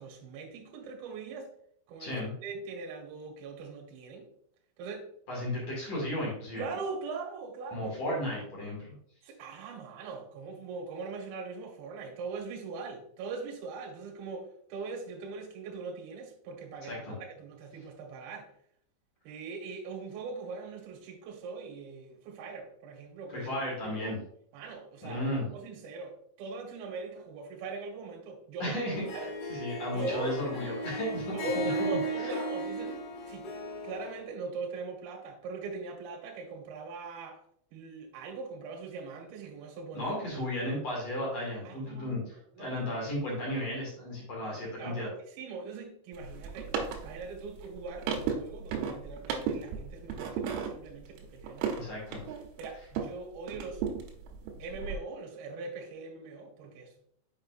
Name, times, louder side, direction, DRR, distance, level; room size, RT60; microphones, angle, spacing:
voice 1, 0.0-1.5 1.9-4.3 4.8-5.1 6.6-8.0 9.2-17.0 17.4-18.5 19.2-24.1 24.5-25.2 25.5-28.8 29.1-29.3 29.9-30.7 31.3-33.0 33.3-33.5 33.8-37.4 37.7-40.1 41.6-42.7 44.4-45.1 45.4-46.7 47.0-51.9 52.6-53.8 54.6-56.9, right 4 dB, 70° right, 1 dB, 2.5 m, -41 dB
voice 2, 2.0-2.3 5.3-6.7 7.7-9.0 16.9-17.2 23.3-24.2 25.0-25.5 28.6-31.4 32.2-32.3 39.9-45.1 51.8-52.2, left 1 dB, 45° left, -4 dB, 2.4 m, -34 dB
Harp, 28.9-34.2, equal, 75° left, 3.7 m, -36 dB
sound 1, 46.1-53.2 53.5-55.0, right 6 dB, 90° right, 3.6 m, -35 dB
7.7 x 5.7 x 2.5 m, 0.64 s
omnidirectional pair, 5.8 m